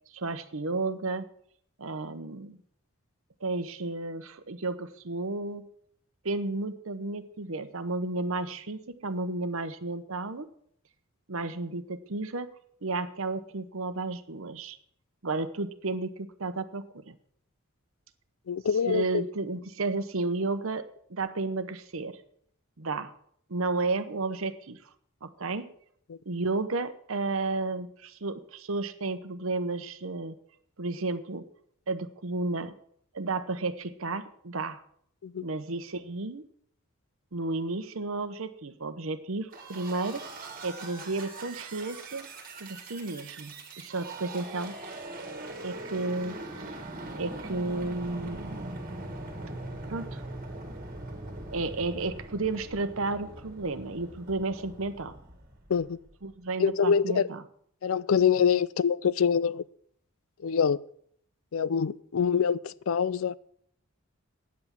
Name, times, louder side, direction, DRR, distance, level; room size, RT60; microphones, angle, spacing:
voice 1, 0.1-1.3 1.8-2.6 3.4-5.7 6.2-10.5 11.3-12.5 12.8-14.8 15.2-17.2 18.8-22.2 22.8-23.1 23.5-24.8 25.2-25.7 26.3-30.3 30.8-31.4 31.9-32.7 33.1-34.8 35.4-36.4 37.3-40.2 40.6-42.3 42.6-44.8 45.6-46.8 47.1-48.8 49.9-50.2 51.5-55.1 56.2-57.4, right 3 dB, 70° right, 0.9 m, -32 dB
voice 2, 18.5-19.3 26.1-26.2 35.2-35.5 55.7-56.0 56.6-57.3 57.8-59.6 60.4-60.8 61.5-63.4, left 7 dB, 70° left, 0.4 m, -25 dB
sound 1, 39.5-56.1, right 2 dB, 40° right, 1.8 m, -41 dB
9.5 x 8.1 x 7.3 m
head